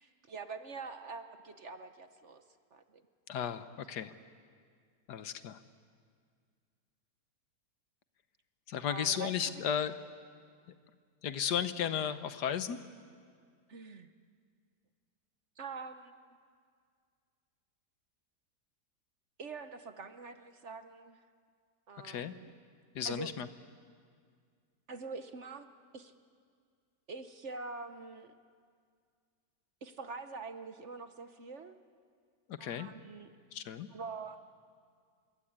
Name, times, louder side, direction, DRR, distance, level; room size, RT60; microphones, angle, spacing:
voice 1, 0.0-2.4 2.7-3.0 8.9-9.6 13.7-14.1 15.6-16.1 19.4-21.2 21.9-22.5 23.0-23.3 24.9-25.7 25.9-26.1 27.1-28.3 29.8-31.8 32.6-33.3 33.9-34.5, right 4 dB, 50° right, 9 dB, 1.1 m, -45 dB
voice 2, 3.3-4.1 5.1-5.6 8.7-9.9 11.2-12.8 22.0-22.3 22.9-23.5 32.5-32.9 33.5-33.9, left 8 dB, 75° left, 12 dB, 1.5 m, -34 dB
25.5 x 22.5 x 8.8 m, 2.1 s
omnidirectional pair, 1.8 m